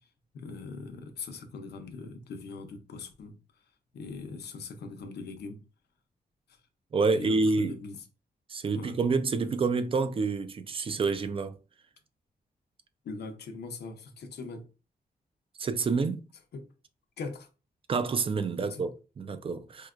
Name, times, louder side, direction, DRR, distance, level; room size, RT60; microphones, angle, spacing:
voice 1, 0.0-3.4 3.9-5.6 6.5-6.6 6.9-8.0 8.7-9.0 13.0-14.7 16.5-16.7 17.2-17.5 18.6-18.9, left 4 dB, 90° left, 0.7 m, -41 dB
voice 2, 6.9-7.8 8.5-11.6 15.6-16.3 17.9-19.9, right 4 dB, 35° right, 0.4 m, -28 dB
4.5 x 2.2 x 2.4 m
wide cardioid pair, 155°, 16 cm